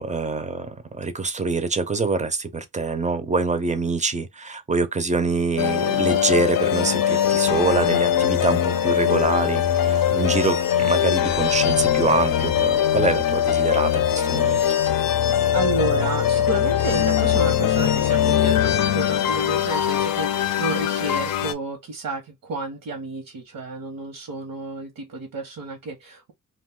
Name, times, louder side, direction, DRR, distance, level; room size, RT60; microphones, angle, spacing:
voice 1, 0.0-14.6, right 4 dB, 20° right, 0.4 m, -25 dB
sound 1, 5.6-21.5, left 10 dB, 85° left, 0.5 m, -21 dB
voice 2, 15.5-26.3, right 3 dB, 75° right, 0.9 m, -31 dB
2.5 x 2.3 x 3.6 m
wide cardioid pair, 135°, 34 cm